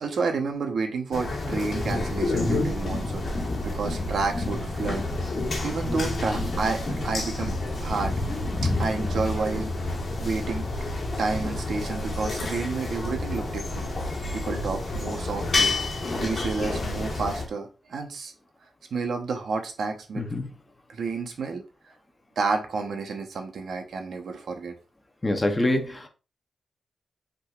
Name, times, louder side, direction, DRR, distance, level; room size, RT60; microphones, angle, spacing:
voice 1, 0.0-3.3 3.6-5.1 5.6-8.2 8.6-9.7 10.2-10.7 11.2-13.9 14.3-18.3 18.9-20.2 20.9-21.6 22.4-24.7, right 4 dB, 70° right, 0.9 m, -30 dB
sound 1, 1.1-17.5, left 2 dB, 45° left, 1.5 m, -29 dB
voice 2, 2.3-2.7 14.2-14.4 20.2-20.5 25.2-26.1, left 1 dB, 20° left, 0.8 m, -26 dB
5.6 x 3.9 x 2.4 m
wide cardioid pair, 130°, 0 cm